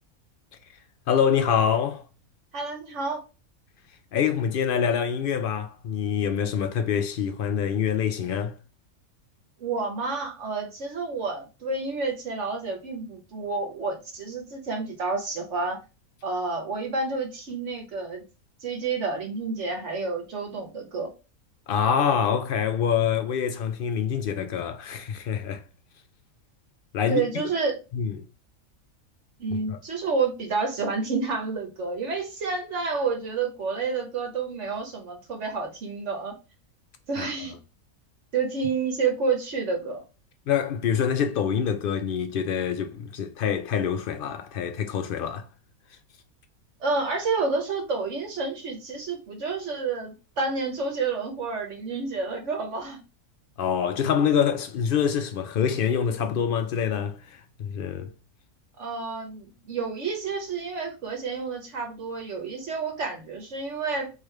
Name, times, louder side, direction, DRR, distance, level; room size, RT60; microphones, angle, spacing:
voice 1, 1.1-2.0 4.1-8.5 21.7-25.6 26.9-27.3 27.9-28.1 29.5-29.8 37.2-37.3 40.5-45.5 53.6-58.1, left 7 dB, 80° left, 0.4 m, -25 dB
voice 2, 2.5-3.2 9.6-15.8 16.2-18.2 18.6-21.1 27.1-27.8 29.4-36.3 37.1-37.6 38.3-40.0 46.8-53.0 58.8-64.1, right 4 dB, 60° right, 1.1 m, -29 dB
3.4 x 3.3 x 4.4 m
omnidirectional pair, 1.5 m